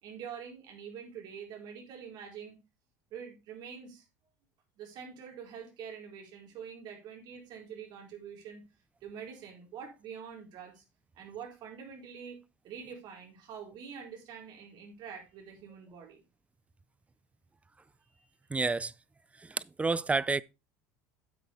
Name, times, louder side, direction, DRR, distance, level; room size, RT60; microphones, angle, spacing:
voice 1, 0.0-2.6 3.1-4.0 4.8-8.6 9.0-10.8 11.1-12.4 12.6-16.2 18.1-18.3, right 7 dB, 55° right, 4.6 m, -45 dB
voice 2, 18.5-18.9 19.4-20.4, right 3 dB, 15° right, 0.4 m, -29 dB
9.4 x 8.3 x 3.5 m
hypercardioid pair, 85°, 8 cm